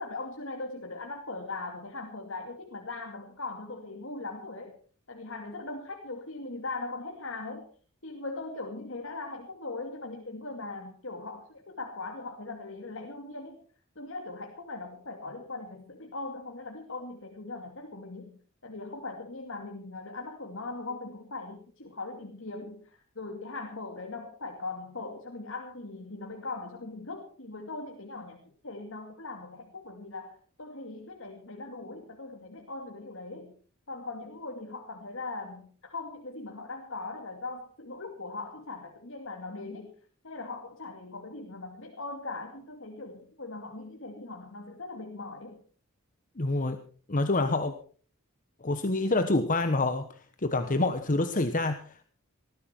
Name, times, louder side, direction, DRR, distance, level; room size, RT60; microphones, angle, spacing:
voice 1, 0.0-4.8 5.1-7.7 8.0-13.6 14.0-18.3 18.6-28.4 28.6-33.5 33.9-39.9 40.2-45.6, left 3 dB, 65° left, 2 dB, 2.4 m, -40 dB
voice 2, 46.4-46.8 47.1-47.7 48.6-50.1 50.4-52.0, left 2 dB, 40° left, 8 dB, 1.1 m, -27 dB
19.5 x 14.5 x 4.5 m, 0.43 s
head